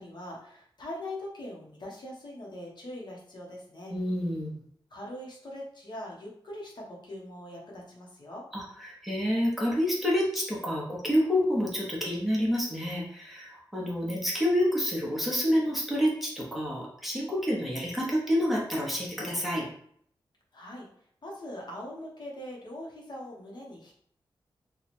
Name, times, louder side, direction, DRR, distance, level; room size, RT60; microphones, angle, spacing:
voice 1, 0.0-3.9 4.9-8.5 20.5-20.9 21.2-24.0, left 1 dB, 55° left, -2 dB, 0.9 m, -42 dB
voice 2, 3.9-4.6 8.5-19.7, equal, ahead, -4 dB, 0.9 m, -28 dB
3.0 x 2.3 x 4.2 m, 0.64 s
wide cardioid pair, 120°, 9 cm